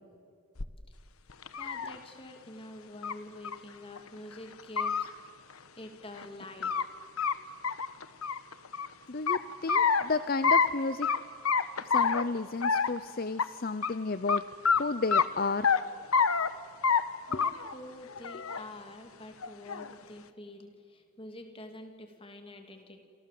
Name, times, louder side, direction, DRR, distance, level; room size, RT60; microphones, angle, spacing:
sound 1, 0.6-0.7 1.3-1.9 3.0-3.1 3.4-3.5 4.0-4.1 4.6-5.0 6.2-6.8 7.2-7.3 7.6-8.9 9.3-10.0 10.4-10.7 11.0-11.2 11.4-12.2 12.6-13.0 13.4-13.5 13.8-13.9 14.3-14.4 14.6-14.8 15.1-15.8 16.1-16.5 16.8-17.0 17.3-17.7 18.1-18.6 19.4-19.9, left 5 dB, 85° left, 1.1 m, -27 dB
voice 1, 1.6-5.1 5.8-6.9 17.3-23.0, left 1 dB, 25° left, 5 dB, 2.8 m, -47 dB
voice 2, 9.1-11.1 11.9-14.4 14.8-15.7, left 3 dB, 45° left, 14 dB, 0.6 m, -32 dB
28.5 x 26.5 x 7.7 m, 2.3 s
head